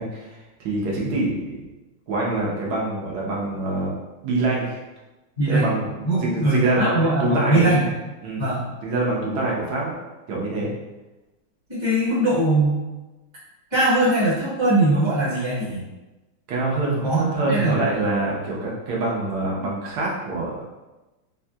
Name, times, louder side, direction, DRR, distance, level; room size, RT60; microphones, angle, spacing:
voice 1, 0.0-1.6 2.1-3.9 4.2-4.8 5.5-7.7 8.2-8.4 8.8-9.9 10.3-10.7 16.5-20.6, right 2 dB, 80° right, -4 dB, 1.6 m, -25 dB
voice 2, 5.4-5.7 6.0-7.9 8.4-8.6 11.7-12.8 13.7-15.8 17.0-17.8, right 2 dB, 15° right, -10 dB, 1.1 m, -21 dB
4.1 x 2.7 x 2.3 m, 1.1 s
omnidirectional pair, 2.2 m